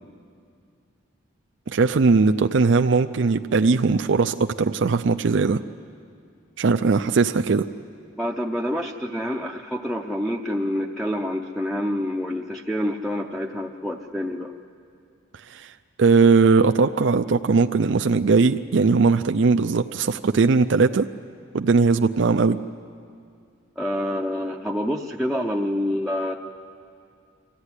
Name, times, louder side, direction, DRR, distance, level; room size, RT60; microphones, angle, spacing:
voice 1, 1.7-5.6 6.6-7.7 15.5-15.7 16.0-21.1 21.5-22.6, right 4 dB, 65° right, 6 dB, 0.5 m, -19 dB
voice 2, 8.2-14.5 23.8-26.3, equal, ahead, 0 dB, 0.6 m, -27 dB
25.0 x 15.0 x 9.8 m, 2.3 s
head